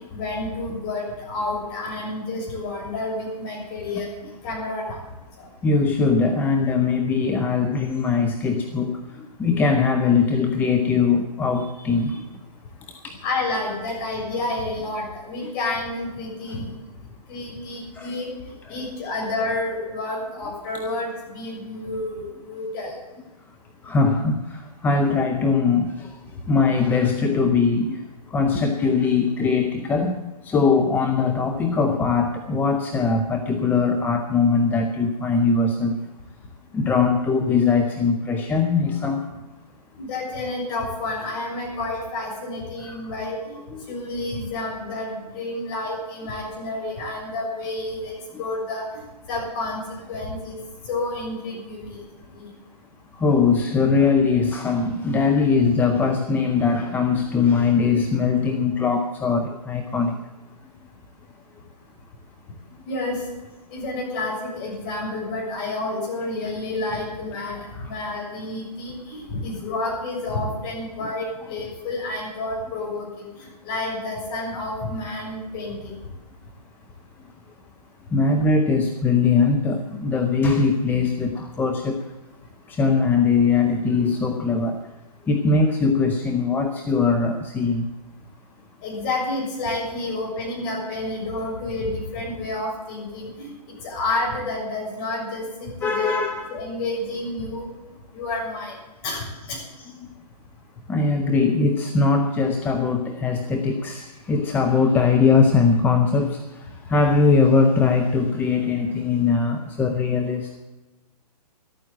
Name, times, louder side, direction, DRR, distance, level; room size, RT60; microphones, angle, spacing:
voice 1, 0.1-4.1 4.4-5.0 5.4-5.5 13.2-16.7 17.3-18.3 18.7-22.9 40.0-43.6 43.9-49.0 49.3-50.6 50.9-52.0 52.3-52.5 62.9-63.2 63.7-73.3 73.6-75.9 88.8-93.5 93.8-96.2 96.5-97.7 98.1-98.7 99.0-99.6, left 2 dB, 35° left, -3 dB, 6.7 m, -29 dB
voice 2, 5.6-12.2 12.9-13.2 15.4-15.5 17.9-18.2 18.7-18.8 23.8-36.1 36.7-39.3 42.8-43.1 43.7-43.9 53.1-60.2 67.7-67.9 71.0-71.1 78.1-82.1 82.7-84.9 85.3-87.9 95.8-96.5 99.8-100.1 100.9-110.5, left 4 dB, 10° left, 3 dB, 0.6 m, -21 dB
12.5 x 9.0 x 9.8 m, 1.1 s
figure-of-eight pair, 125°, 21 cm